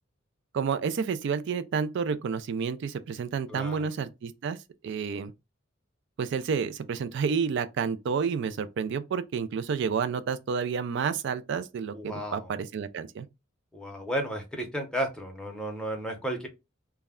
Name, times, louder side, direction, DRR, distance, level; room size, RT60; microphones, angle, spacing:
voice 1, 0.5-4.6 4.8-5.3 6.2-13.3, right 6 dB, 60° right, 0.3 m, -30 dB
voice 2, 3.5-3.9 11.9-12.4 13.7-16.5, right 1 dB, 5° left, 0.7 m, -33 dB
2.2 x 2.1 x 3.5 m
head